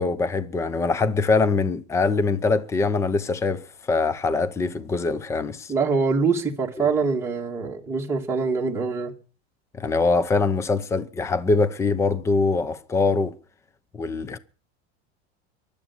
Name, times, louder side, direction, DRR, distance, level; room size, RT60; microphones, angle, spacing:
voice 1, 0.0-5.7 6.8-6.9 9.7-13.4 13.9-14.4, left 3 dB, 10° left, 0.7 m, -23 dB
voice 2, 5.7-9.1, right 4 dB, 10° right, 2.4 m, -24 dB
23.0 x 8.4 x 6.1 m
supercardioid pair, 160°, 33 cm